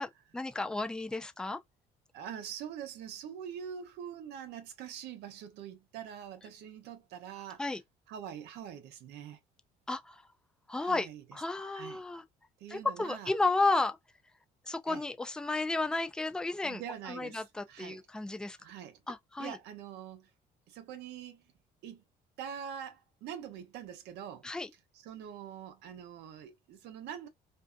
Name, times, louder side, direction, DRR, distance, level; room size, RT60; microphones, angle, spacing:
voice 1, 0.0-1.6 7.6-7.8 9.9-10.2 10.7-12.2 12.7-14.0 14.7-16.8 17.1-18.6 19.1-19.6 24.4-24.7, left 3 dB, 5° left, 0.3 m, -33 dB
voice 2, 2.1-7.7 8.1-9.4 10.8-11.2 11.7-12.0 12.6-13.3 14.9-15.0 16.6-18.0 18.6-19.0 19.4-20.3 20.7-21.5 21.8-22.0 22.4-24.5 25.0-27.3, right 9 dB, 85° right, 0.7 m, -44 dB
2.6 x 2.4 x 2.2 m
cardioid pair, 110°, 17 cm